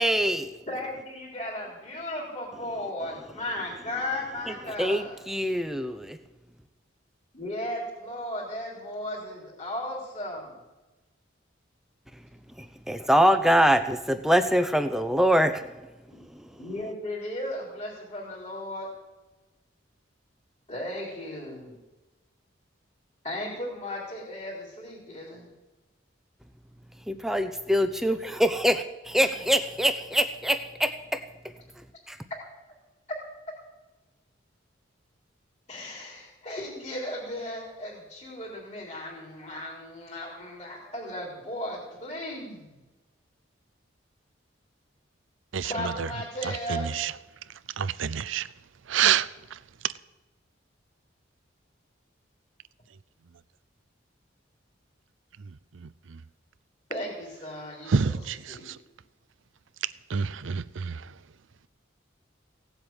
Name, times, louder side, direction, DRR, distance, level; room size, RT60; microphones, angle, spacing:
voice 1, 0.0-0.5 4.5-6.2 12.6-15.7 16.3-16.6 27.1-31.5 32.1-32.2, equal, ahead, 0.7 m, -24 dB
voice 2, 0.7-5.2 7.3-10.5 16.6-18.9 20.7-21.7 23.2-25.5 35.7-42.8 45.6-46.9 56.9-58.7, left 1 dB, 35° left, 3.9 m, -36 dB
voice 3, 47.8-48.4 48.9-49.3 57.9-58.1 60.1-60.6, right 7 dB, 85° right, 0.6 m, -24 dB
17.0 x 8.0 x 8.9 m
head